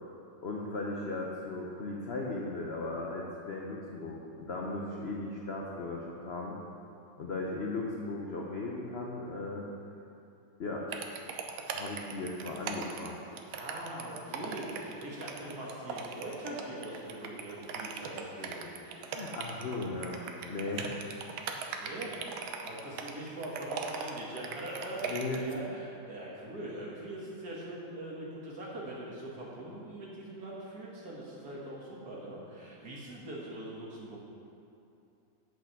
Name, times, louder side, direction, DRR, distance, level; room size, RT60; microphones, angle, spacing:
voice 1, 0.4-6.6 7.2-9.7 10.6-10.8 11.7-13.3 19.1-21.2 25.1-25.7, left 2 dB, 65° left, -2 dB, 0.6 m, -37 dB
sound 1, 10.9-25.5, right 6 dB, 80° right, 1.5 m, -39 dB
voice 2, 13.5-19.2 21.7-22.2 22.6-34.2, right 1 dB, 50° right, -5 dB, 2.2 m, -42 dB
8.3 x 6.7 x 5.9 m, 2.7 s
omnidirectional pair, 2.2 m